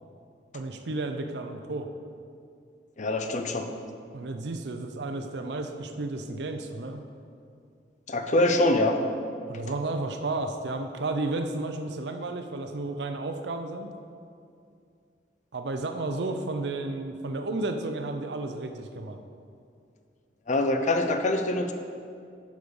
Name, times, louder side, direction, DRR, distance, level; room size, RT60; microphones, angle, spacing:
voice 1, 0.5-1.9 4.1-7.0 9.5-13.9 15.5-19.2, right 2 dB, 70° right, 6 dB, 0.6 m, -32 dB
voice 2, 3.0-3.7 8.1-9.0 20.5-21.7, left 2 dB, 45° left, 6 dB, 0.7 m, -24 dB
8.1 x 5.2 x 7.0 m, 2.4 s
head